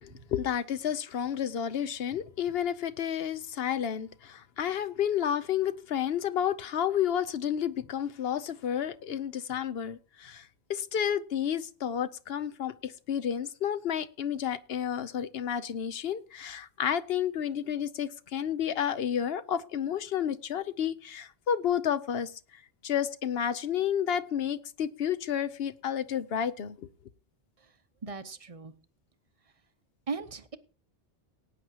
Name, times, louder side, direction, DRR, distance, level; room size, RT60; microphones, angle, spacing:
voice 1, 0.0-22.3 22.8-26.9, left 9 dB, 65° left, 0.9 m, -31 dB
voice 2, 28.0-28.7 30.1-30.6, right 4 dB, 35° right, 0.8 m, -37 dB
18.5 x 9.3 x 2.9 m
omnidirectional pair, 1.2 m